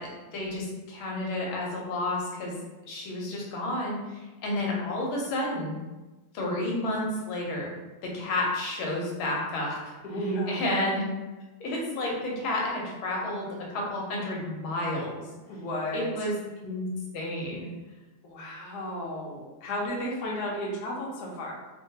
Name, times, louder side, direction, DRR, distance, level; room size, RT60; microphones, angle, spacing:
voice 1, 0.0-2.5 2.8-5.8 6.3-7.7 8.0-10.0 10.5-11.0 11.6-15.2 15.9-16.3 16.6-16.9 17.1-17.7, left 1 dB, 85° left, -2 dB, 1.5 m, -31 dB
voice 2, 10.0-10.6 15.5-16.1 18.2-21.5, equal, 65° left, -3 dB, 1.0 m, -33 dB
3.3 x 2.2 x 2.7 m, 1.1 s
omnidirectional pair, 2.2 m